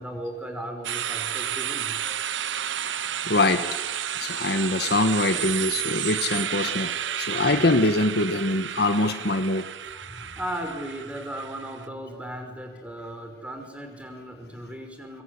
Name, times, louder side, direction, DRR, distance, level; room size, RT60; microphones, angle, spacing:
voice 1, 0.0-2.2 4.7-4.9 6.7-7.0 9.9-15.2, right 1 dB, 5° right, 4 dB, 5.6 m, -37 dB
sound 1, 0.8-11.9, right 10 dB, 85° right, 0.9 m, -31 dB
voice 2, 2.8-3.7 4.2-9.7, left 2 dB, 60° left, 10 dB, 1.4 m, -24 dB
25.0 x 24.0 x 10.0 m, 1.2 s
head